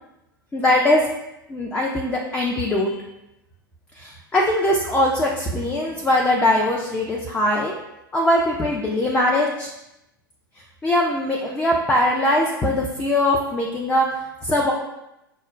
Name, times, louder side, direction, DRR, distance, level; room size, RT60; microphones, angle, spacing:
voice 1, 0.5-1.1 1.5-3.0 3.9-7.7 8.1-9.7 10.8-14.1 14.4-14.7, left 1 dB, 10° left, -2 dB, 0.4 m, -21 dB
6.0 x 2.1 x 2.4 m, 0.91 s
figure-of-eight pair, 90°, 12 cm